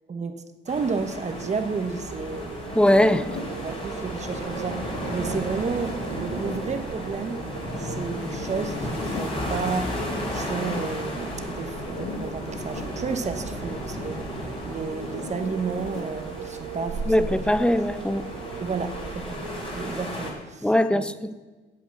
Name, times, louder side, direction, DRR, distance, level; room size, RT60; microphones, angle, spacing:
voice 1, 0.1-2.5 2.9-3.1 3.6-7.4 7.8-10.0 10.3-17.5 18.6-21.1, right 5 dB, 35° right, 1.1 m, -32 dB
sound 1, 0.7-20.3, left 1 dB, 30° left, 3.2 m, -35 dB
Wind, 1.2-20.2, right 6 dB, 85° right, 0.9 m, -38 dB
Zipper (clothing), 2.7-3.6 5.5-6.7 8.3-9.4 11.8-12.9 15.0-16.1, left 4 dB, 80° left, 1.6 m, -38 dB
voice 2, 2.8-3.2 17.1-18.3 20.6-21.3, left 1 dB, 5° left, 0.5 m, -21 dB
8.6 x 8.1 x 7.6 m
cardioid pair, 90°, 20 cm